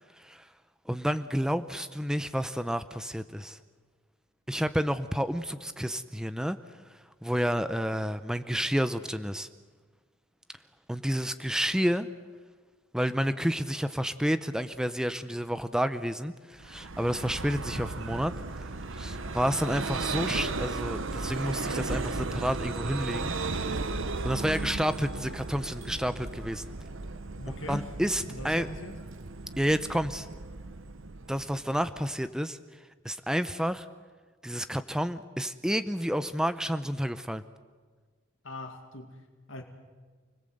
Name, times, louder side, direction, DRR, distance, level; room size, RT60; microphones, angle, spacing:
voice 1, 0.9-3.6 4.5-6.6 7.2-9.5 10.9-12.1 12.9-18.3 18.9-23.3 24.2-26.7 27.7-28.7 29.6-30.3 31.3-32.6 33.0-33.8 34.4-37.4, equal, 5° right, 11 dB, 0.7 m, -30 dB
Vehicle, 16.6-32.1, right 3 dB, 55° right, 1.0 m, -35 dB
voice 2, 27.4-27.9 28.3-28.9 38.4-39.6, left 2 dB, 60° left, 3 dB, 2.3 m, -41 dB
29.0 x 20.5 x 7.9 m, 1.4 s
head